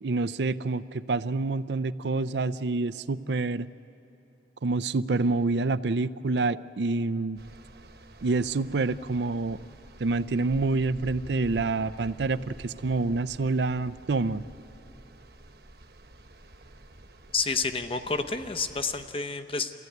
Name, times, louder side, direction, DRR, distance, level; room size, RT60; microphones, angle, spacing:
voice 1, 0.0-3.7 4.6-7.4 8.2-9.6 10.0-14.4, right 3 dB, 75° right, 15 dB, 0.6 m, -27 dB
sound 1, 7.4-19.1, right 1 dB, 60° right, 1.2 m, -49 dB
voice 2, 17.3-19.8, left 4 dB, 30° left, 8 dB, 0.9 m, -29 dB
29.5 x 15.0 x 9.3 m, 2.9 s
head